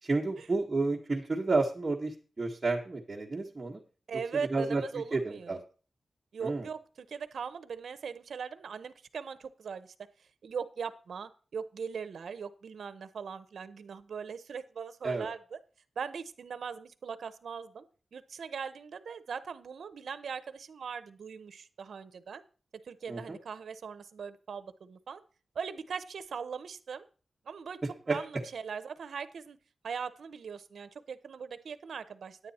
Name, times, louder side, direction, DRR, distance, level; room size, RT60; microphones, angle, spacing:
voice 1, 0.0-3.8 4.5-4.8 5.1-5.6 6.4-6.7 15.0-15.3 23.1-23.4 28.1-28.2, right 3 dB, 25° right, -4 dB, 1.4 m, -31 dB
voice 2, 4.1-5.6 6.3-9.9 10.4-15.6 16.0-17.8 18.1-22.4 22.8-25.2 25.5-27.0 27.5-27.8 28.1-29.6 29.8-32.4, right 6 dB, 80° right, 13 dB, 0.7 m, -40 dB
9.7 x 9.2 x 4.2 m, 0.38 s
wide cardioid pair, 120°, 0 cm